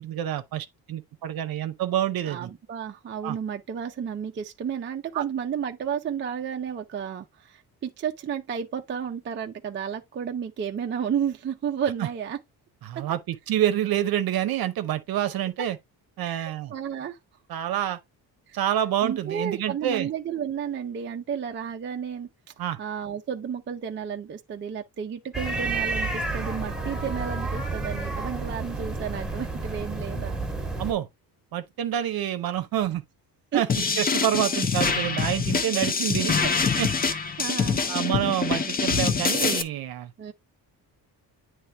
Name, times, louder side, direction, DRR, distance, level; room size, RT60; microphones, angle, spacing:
voice 1, 0.0-2.5 3.2-3.4 5.1-5.2 12.0-12.1 12.8-15.8 16.2-16.7 17.5-18.0 18.5-20.1 22.6-22.8 30.8-31.1 31.5-33.0 33.5-33.7 34.0-36.4 36.8-36.9 37.9-40.1, right 11 dB, 65° right, 0.7 m, -27 dB
voice 2, 2.3-12.4 12.9-13.0 16.2-17.2 18.5-18.6 19.0-22.3 22.8-30.3 33.5-33.6 35.7-35.9 36.4-36.5 37.0-37.8 40.2-40.3, right 8 dB, 30° right, 0.5 m, -32 dB
sound 1, 25.3-30.9, right 3 dB, ahead, 1.3 m, -30 dB
sound 2, 33.7-39.6, left 5 dB, 25° left, 0.5 m, -25 dB
9.3 x 3.3 x 3.3 m
cardioid pair, 155°, 39 cm